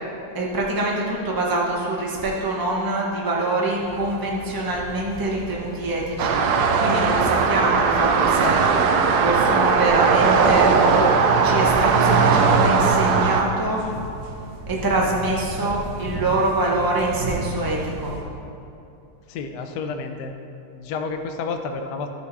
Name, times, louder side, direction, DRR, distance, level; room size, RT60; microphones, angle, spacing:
voice 1, 0.3-8.6 9.1-11.1 11.4-13.8 14.7-18.1, right 2 dB, 25° right, -3 dB, 0.5 m, -25 dB
sound 1, 3.8-18.2, right 1 dB, 60° right, 1.7 m, -36 dB
sound 2, 6.2-13.4, right 5 dB, 80° right, 0.9 m, -18 dB
voice 2, 19.3-20.3 20.7-22.1, left 4 dB, 75° left, 6 dB, 0.9 m, -30 dB
14.0 x 4.9 x 4.1 m, 2.6 s
omnidirectional pair, 2.4 m